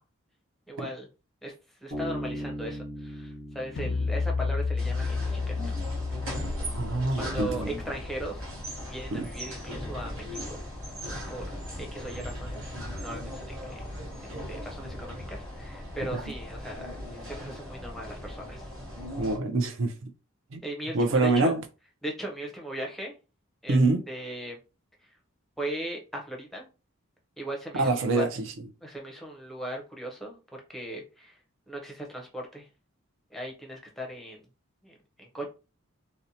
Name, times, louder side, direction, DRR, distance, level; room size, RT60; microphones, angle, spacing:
voice 1, 0.7-1.1 1.4-1.5 1.8-5.7 7.2-8.4 8.9-10.6 11.3-13.5 13.8-13.9 14.5-18.7 20.6-21.5 22.0-23.1 23.6-23.8 24.1-24.6 25.6-26.6 27.4-28.2 28.8-30.4 30.7-31.4 31.7-32.7 33.3-34.4 34.8-35.5, right 1 dB, ahead, 0.5 m, -38 dB
Bass guitar, 1.9-5.4, equal, 40° right, 1.0 m, -39 dB
sound 1, 3.8-9.1, left 4 dB, 60° left, 0.3 m, -32 dB
sound 2, 4.8-19.4, equal, 85° right, 1.1 m, -38 dB
voice 2, 6.7-7.7 9.1-9.3 16.1-16.2 19.2-20.1 20.5-20.6 20.9-21.6 23.7-24.0 27.7-28.4, right 2 dB, 65° right, 0.5 m, -25 dB
2.6 x 2.1 x 2.7 m
head